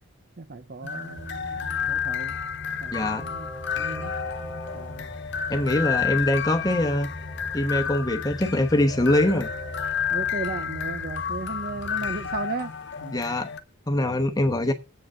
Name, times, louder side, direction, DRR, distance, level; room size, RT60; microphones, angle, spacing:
voice 1, 0.4-2.4 2.8-3.5 3.8-4.1 4.7-5.1 10.1-12.7 13.0-13.2 14.3-14.4, right 3 dB, 45° right, 0.7 m, -35 dB
sound 1, 0.8-13.6, left 7 dB, 55° left, 0.7 m, -31 dB
Train, 1.2-12.4, equal, 15° right, 3.8 m, -41 dB
voice 2, 2.9-3.3 5.5-7.1 7.5-9.5 13.1-13.5 13.9-14.7, left 1 dB, 20° left, 1.0 m, -23 dB
7.9 x 6.3 x 7.9 m
head